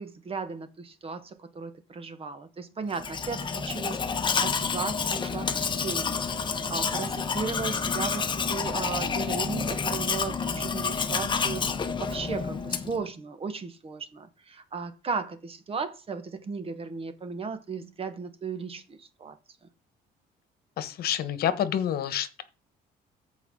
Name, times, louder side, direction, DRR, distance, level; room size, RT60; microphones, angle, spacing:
voice 1, 0.0-19.4, right 5 dB, 35° right, 1.3 m, -36 dB
Domestic sounds home sounds, 2.9-13.0, left 5 dB, 30° left, 1.0 m, -29 dB
voice 2, 20.8-22.4, left 10 dB, 65° left, 1.3 m, -28 dB
14.0 x 4.7 x 3.8 m
cardioid pair, 110°, 17 cm